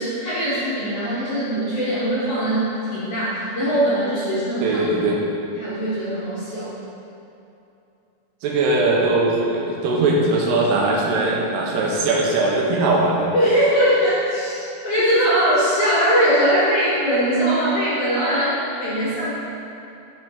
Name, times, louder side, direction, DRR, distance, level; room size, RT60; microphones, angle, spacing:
voice 1, 0.2-4.8 5.6-6.7 13.3-19.3, equal, 55° left, -11 dB, 1.8 m, -21 dB
voice 2, 4.6-5.2 8.4-13.3 15.1-15.2, right 2 dB, 85° right, -2 dB, 3.0 m, -20 dB
6.8 x 6.1 x 5.0 m, 2.7 s
omnidirectional pair, 4.7 m